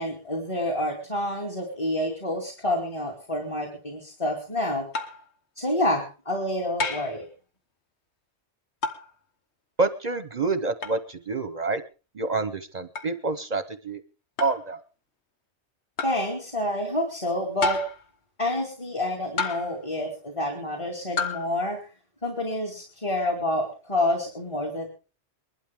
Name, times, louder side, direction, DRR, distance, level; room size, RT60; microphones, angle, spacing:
voice 1, 0.0-4.9 5.6-7.3 16.0-17.8 18.4-21.8 22.2-24.9, left 1 dB, 30° left, -1 dB, 2.6 m, -28 dB
sound 1, 4.9-5.3 6.8-7.2 8.8-9.1 10.8-11.0 13.0-13.1 14.4-14.7 16.0-16.3 17.6-18.1 19.4-19.8 21.2-21.5, left 4 dB, 90° left, 1.5 m, -30 dB
voice 2, 9.8-11.8 12.2-14.0 14.4-14.8, right 3 dB, 45° right, 11 dB, 0.8 m, -27 dB
22.0 x 12.0 x 3.5 m, 0.34 s
omnidirectional pair, 1.1 m